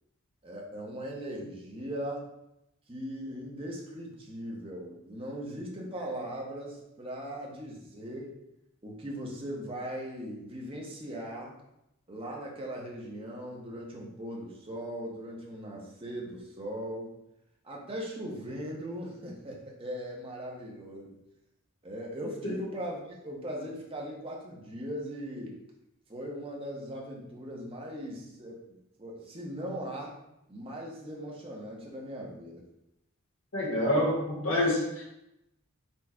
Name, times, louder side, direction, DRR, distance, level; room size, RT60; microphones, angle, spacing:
voice 1, 0.4-2.3 2.9-8.3 8.8-11.6 12.1-17.1 17.6-21.2 21.8-25.6 26.1-28.7 29.0-30.1 30.5-32.6, equal, 25° right, -2 dB, 0.8 m, -39 dB
voice 2, 33.5-35.0, left 1 dB, 60° left, -4 dB, 1.4 m, -27 dB
4.5 x 2.4 x 4.2 m, 0.85 s
head